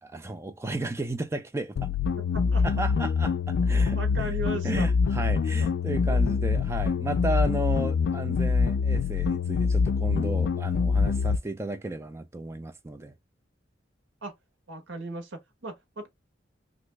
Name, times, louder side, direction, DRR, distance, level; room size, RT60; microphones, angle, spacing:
voice 1, 0.0-1.9 2.6-4.4 4.6-13.1, right 2 dB, 15° right, 0.4 m, -34 dB
sound 1, 1.8-11.4, left 5 dB, 80° left, 0.3 m, -25 dB
voice 2, 2.3-2.6 3.7-4.9 14.2-14.3 14.7-16.1, right 2 dB, 80° right, 1.1 m, -37 dB
2.9 x 2.5 x 3.3 m
head